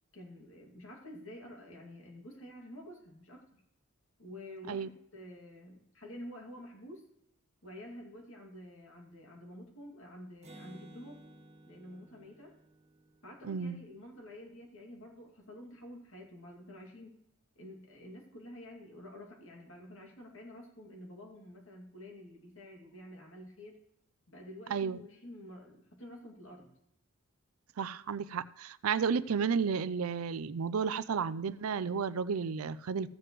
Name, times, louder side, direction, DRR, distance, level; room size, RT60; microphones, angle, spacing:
voice 1, 0.1-3.6 4.2-7.1 7.6-11.2 11.7-12.5 13.2-17.1 17.6-23.8 24.3-26.7, left 1 dB, 65° left, 1 dB, 2.5 m, -49 dB
Acoustic guitar, 10.4-14.1, right 1 dB, 35° right, 1.6 m, -55 dB
voice 2, 13.5-13.8 24.7-25.0 27.8-33.1, right 6 dB, 90° right, 16 dB, 0.5 m, -32 dB
15.0 x 7.8 x 3.1 m, 0.77 s
head